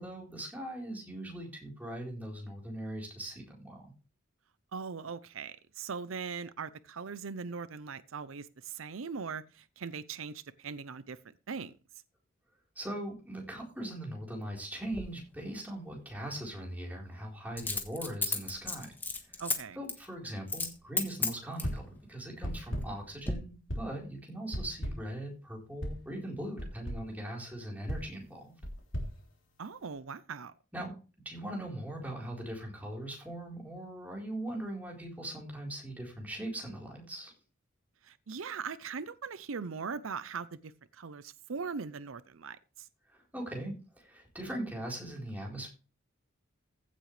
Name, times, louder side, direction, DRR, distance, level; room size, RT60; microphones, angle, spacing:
voice 1, 0.0-3.9 12.8-18.9 19.2-19.4 19.8-28.5 30.7-30.9 31.2-37.3 43.1-45.7, right 1 dB, 10° right, 4.1 m, -40 dB
voice 2, 4.7-11.2 11.5-11.7 19.4-19.8 29.6-30.5 38.0-42.9, right 5 dB, 90° right, 0.6 m, -40 dB
Coin (dropping), 14.9-15.1 17.6-19.6 19.9-20.1 20.5-20.7 21.0-21.8 22.4-22.9 23.2-23.3, left 3 dB, 10° left, 1.4 m, -33 dB
sound 1, 21.6-22.0 22.4-23.1 23.7-24.1 24.5-25.2 25.8-26.1 26.6-27.1 27.9-29.9, equal, 75° left, 3.3 m, -38 dB
15.5 x 7.7 x 3.3 m
head